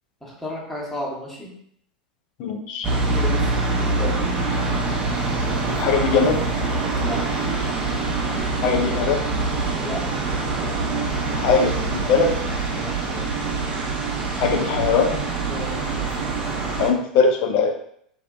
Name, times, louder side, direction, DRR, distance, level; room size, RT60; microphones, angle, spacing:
voice 1, 0.2-1.5 2.9-3.5 4.0-4.2 7.0-7.2 9.8-10.1 12.7-13.3 15.4-15.8, equal, 5° left, -4 dB, 0.8 m, -33 dB
voice 2, 2.4-2.9 5.7-6.4 8.6-9.2 11.3-12.3 14.4-15.2 16.8-17.7, left 5 dB, 50° left, 3 dB, 0.4 m, -20 dB
sound 1, 2.8-16.9, right 3 dB, 25° right, 0.5 m, -24 dB
2.8 x 2.1 x 2.2 m, 0.67 s
figure-of-eight pair, 85°, 4 cm